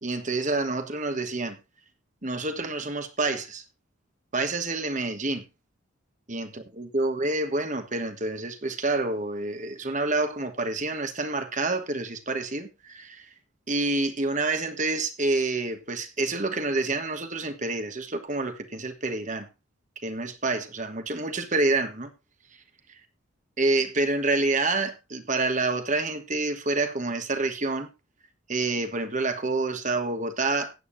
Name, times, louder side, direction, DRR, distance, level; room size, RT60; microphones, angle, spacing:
voice 1, 0.0-1.6 2.2-3.6 4.3-5.4 6.3-13.3 13.7-19.5 20.0-22.1 23.6-27.9 28.5-30.7, right 2 dB, 35° right, 1.3 m, -28 dB
15.5 x 9.4 x 2.7 m
head